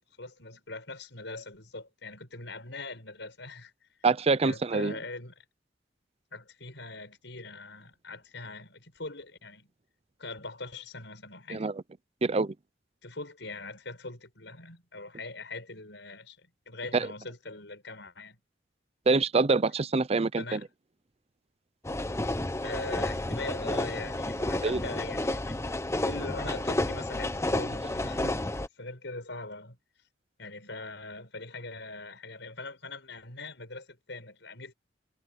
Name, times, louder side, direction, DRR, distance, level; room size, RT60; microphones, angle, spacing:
voice 1, 0.2-3.7 4.4-5.4 6.3-9.7 10.2-11.7 13.0-18.4 20.4-20.7 22.6-25.6 26.0-28.4 28.8-29.8 30.4-34.7, left 3 dB, 70° left, 7.5 m, -41 dB
voice 2, 4.0-5.0 11.5-11.8 12.2-12.5 16.9-17.1 19.1-20.6 24.6-24.8, right 3 dB, 35° right, 0.5 m, -25 dB
sound 1, 21.8-28.7, left 1 dB, 15° left, 1.0 m, -31 dB
head